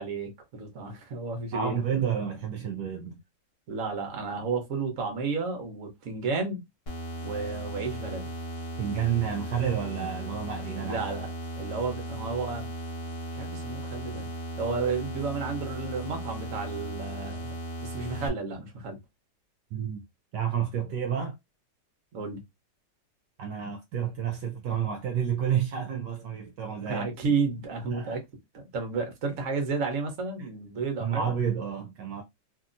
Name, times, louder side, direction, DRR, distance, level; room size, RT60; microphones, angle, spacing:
voice 1, 0.0-1.8 3.7-6.6 7.2-8.2 10.8-11.3 11.6-12.7 13.3-14.3 14.6-17.5 17.8-19.0 22.1-22.4 26.9-28.2 28.5-31.3, right 4 dB, 50° right, 1.1 m, -32 dB
voice 2, 1.5-3.2 8.8-11.1 19.7-20.0 20.3-21.4 23.4-27.1 27.9-28.2 31.0-32.2, right 8 dB, 75° right, 1.2 m, -30 dB
sound 1, 6.9-18.3, right 1 dB, 40° left, 1.0 m, -37 dB
2.9 x 2.7 x 2.5 m
omnidirectional pair, 2.0 m